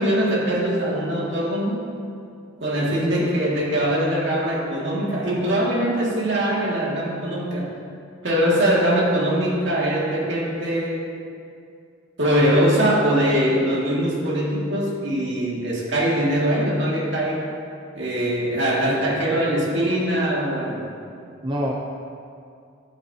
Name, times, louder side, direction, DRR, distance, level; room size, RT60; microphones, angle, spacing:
voice 1, 0.0-1.8 2.6-7.7 8.2-11.0 12.2-17.4 17.9-20.8, right 1 dB, 65° right, -4 dB, 2.1 m, -22 dB
voice 2, 21.4-21.7, equal, 25° right, -1 dB, 0.6 m, -28 dB
12.0 x 8.4 x 2.8 m, 2.4 s
head